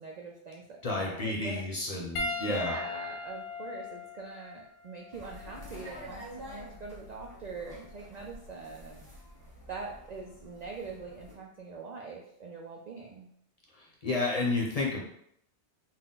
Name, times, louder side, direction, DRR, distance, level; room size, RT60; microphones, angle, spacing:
voice 1, 0.0-1.6 2.4-9.0 9.7-13.3, right 4 dB, 60° right, 0 dB, 0.4 m, -43 dB
voice 2, 0.8-2.8 14.0-15.0, left 2 dB, 35° left, -3 dB, 0.7 m, -31 dB
Piano, 2.2-6.8 7.8-7.9 9.9-10.0, left 3 dB, 80° left, 1.0 m, -40 dB
sound 1, 5.1-11.3, equal, 15° right, 1.4 m, -48 dB
4.1 x 2.2 x 3.8 m, 0.72 s
omnidirectional pair, 1.2 m